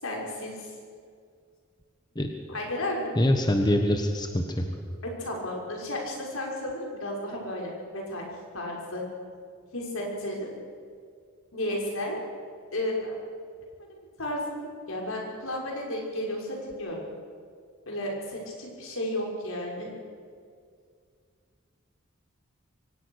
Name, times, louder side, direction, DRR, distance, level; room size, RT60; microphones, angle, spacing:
voice 1, 0.0-0.7 2.5-3.1 5.0-8.3 8.5-9.0 9.7-10.5 11.5-12.3 12.7-13.1 14.2-17.0 17.9-19.9, left 1 dB, 75° left, -1 dB, 5.9 m, -33 dB
voice 2, 3.2-4.6, left 1 dB, 20° left, 4 dB, 1.4 m, -24 dB
24.0 x 18.0 x 6.5 m, 2.1 s
head